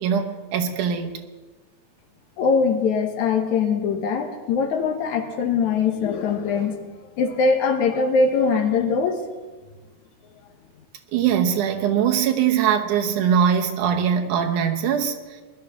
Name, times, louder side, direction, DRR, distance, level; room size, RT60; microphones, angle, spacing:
voice 1, 0.0-1.2 11.1-15.2, right 8 dB, 80° right, 4 dB, 2.6 m, -21 dB
voice 2, 2.4-6.8 7.2-9.2, left 5 dB, 70° left, 5 dB, 2.5 m, -22 dB
20.5 x 12.0 x 3.7 m, 1.3 s
omnidirectional pair, 3.6 m